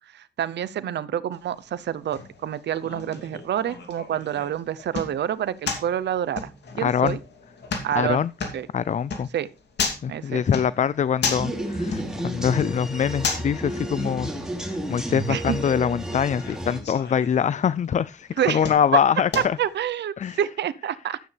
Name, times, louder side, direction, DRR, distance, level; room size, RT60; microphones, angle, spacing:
voice 1, 0.1-6.5 6.8-7.2 7.8-8.2 8.5-8.7 9.3-9.5 10.1-10.4 15.3-15.6 18.4-18.6 19.4-21.2, right 10 dB, 80° right, 0.7 m, -27 dB
sound 1, 1.3-19.9, left 5 dB, 75° left, 2.7 m, -35 dB
voice 2, 6.8-7.2 7.9-8.3 8.7-9.3 10.0-14.3 14.7-19.6 20.2-20.4, left 8 dB, 45° left, 0.4 m, -24 dB
sound 2, 11.2-16.8, right 1 dB, 5° right, 2.8 m, -31 dB
12.5 x 8.7 x 3.3 m
cardioid pair, 70°, 18 cm